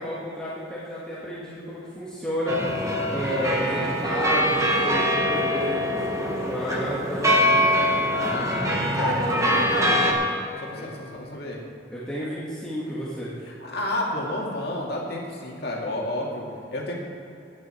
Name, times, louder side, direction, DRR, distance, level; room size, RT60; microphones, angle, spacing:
voice 1, 0.0-2.6 3.1-5.8 6.2-7.7 8.5-8.7 11.9-13.3, equal, 5° left, -9 dB, 1.8 m, -31 dB
sound 1, 2.5-10.1, equal, 15° right, 1.4 m, -23 dB
voice 2, 8.1-8.6 9.0-10.3 10.6-11.6 13.4-16.9, left 1 dB, 55° left, -2 dB, 2.3 m, -31 dB
15.5 x 9.7 x 4.5 m, 2.8 s
head